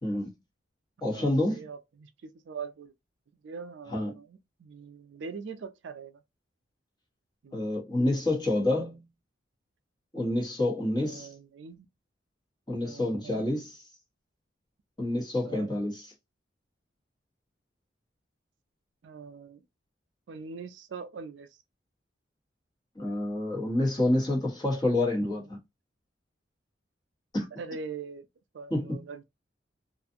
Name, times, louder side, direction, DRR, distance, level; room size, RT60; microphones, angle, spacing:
voice 1, 0.0-0.3 1.0-1.6 3.9-4.1 7.5-9.0 10.1-11.3 12.7-13.8 15.0-16.1 22.9-25.6 27.3-27.5 28.7-29.1, left 1 dB, 20° left, 1.0 m, -28 dB
voice 2, 1.1-2.9 3.4-6.2 7.4-7.6 11.0-11.9 12.8-13.5 15.4-15.7 19.0-19.6 20.3-21.5 25.2-25.4 27.6-28.3 28.5-29.2, right 5 dB, 65° right, 0.4 m, -42 dB
2.6 x 2.3 x 2.5 m
head